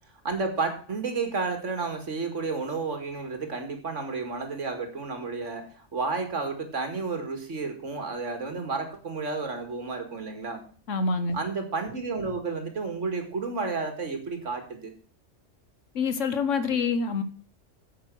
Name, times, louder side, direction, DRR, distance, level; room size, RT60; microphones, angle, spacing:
voice 1, 0.2-10.6 11.3-14.9, right 4 dB, 70° right, 6 dB, 2.4 m, -31 dB
voice 2, 10.9-11.4 15.9-17.2, left 4 dB, 75° left, 11 dB, 1.5 m, -26 dB
9.4 x 8.1 x 6.2 m, 0.43 s
omnidirectional pair, 1.3 m